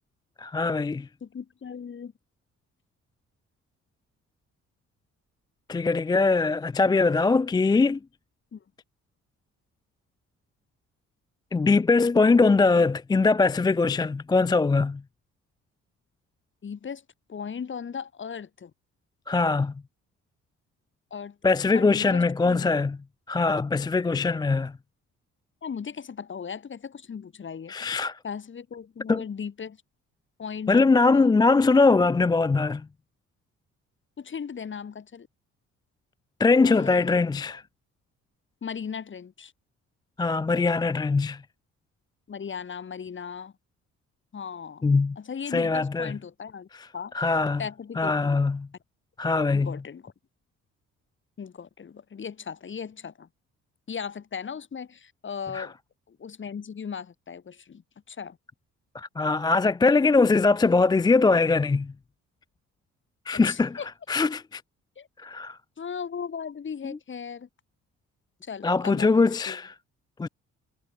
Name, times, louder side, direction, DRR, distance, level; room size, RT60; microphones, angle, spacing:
voice 1, 0.4-1.1 5.7-8.0 11.5-15.0 19.3-19.7 21.4-23.0 23.3-24.7 27.7-28.2 29.1-29.2 30.7-32.8 36.4-37.6 40.2-41.4 44.8-45.2 45.5-46.2 47.1-47.6 48.0-48.7 49.2-49.7 55.5-55.7 58.9-61.9 63.3-63.8 64.1-64.6 65.2-65.6 68.6-69.7 70.2-70.3, left 3 dB, 15° left, 0.4 m, -22 dB
voice 2, 1.2-2.1 8.5-8.6 16.6-17.0 17.3-18.7 21.1-21.4 21.7-22.7 25.6-28.0 28.2-29.8 30.4-31.3 34.2-35.3 36.6-37.6 38.6-39.5 42.3-43.5 44.3-44.9 45.2-47.2 47.6-48.4 49.5-50.1 51.4-53.3 53.9-55.7 56.1-57.8 58.1-58.4 63.3-63.9 65.0-65.1 65.8-67.5 68.4-69.6, left 6 dB, 40° left, 2.3 m, -37 dB
cardioid pair, 90°, 30 cm